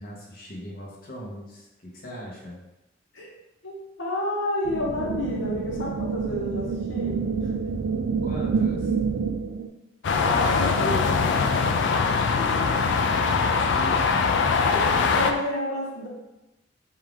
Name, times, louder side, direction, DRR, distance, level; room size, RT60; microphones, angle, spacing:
voice 1, 0.0-2.6 8.2-8.9 13.1-14.5, equal, 50° left, -3 dB, 0.9 m, -38 dB
voice 2, 3.6-7.5 10.2-11.6 12.4-12.8 13.8-13.9 14.7-16.1, left 1 dB, 80° left, -3 dB, 0.8 m, -30 dB
sound 1, 4.7-9.7, right 5 dB, 65° right, 0.3 m, -28 dB
sound 2, 10.0-15.3, left 5 dB, 65° left, 0.3 m, -22 dB
4.4 x 2.4 x 3.5 m, 0.96 s
head